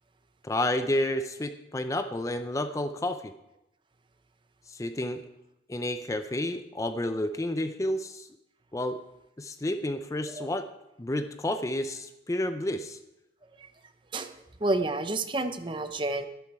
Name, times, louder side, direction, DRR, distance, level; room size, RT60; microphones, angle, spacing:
voice 1, 0.4-3.2 4.7-5.2 5.7-8.3 8.7-9.0 9.4-10.7 11.0-13.0, left 1 dB, 20° left, 9 dB, 0.4 m, -30 dB
voice 2, 14.1-16.3, right 2 dB, 30° right, 9 dB, 0.7 m, -30 dB
11.5 x 10.5 x 4.7 m, 0.91 s
head